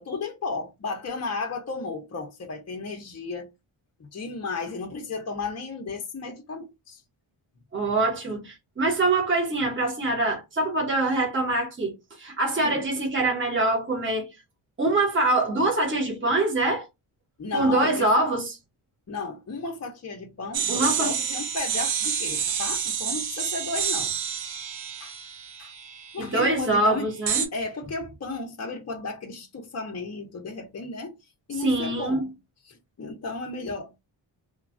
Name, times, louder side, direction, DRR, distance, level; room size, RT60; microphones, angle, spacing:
voice 1, 0.0-3.5 4.0-7.0 12.6-12.8 17.4-18.1 19.1-24.2 25.0-25.1 25.6-25.7 26.1-27.1 27.5-31.1 31.5-32.3 32.6-34.1, left 3 dB, 35° left, 0.6 m, -34 dB
voice 2, 7.7-14.3 14.8-16.9 17.5-18.6 20.7-21.1 26.2-27.4 31.6-32.2, right 2 dB, 25° right, 1.0 m, -24 dB
sound 1, 20.5-26.2 27.3-27.5, right 7 dB, 65° right, 0.7 m, -28 dB
3.1 x 2.2 x 2.5 m
wide cardioid pair, 105°, 49 cm